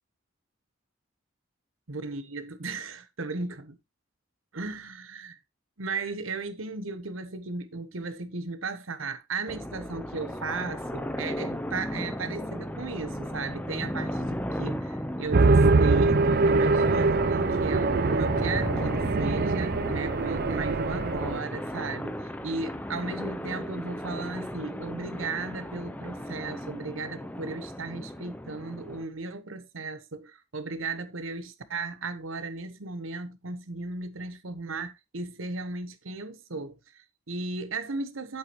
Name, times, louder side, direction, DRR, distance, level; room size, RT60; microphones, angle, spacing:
voice 1, 1.9-3.8 4.5-5.4 5.8-22.1 22.4-38.4, right 3 dB, 85° right, 1.1 m, -36 dB
sound 1, 9.5-29.0, equal, 10° left, 0.7 m, -35 dB
sound 2, 15.3-21.4, right 3 dB, 50° right, 0.5 m, -23 dB
8.4 x 8.1 x 3.0 m
head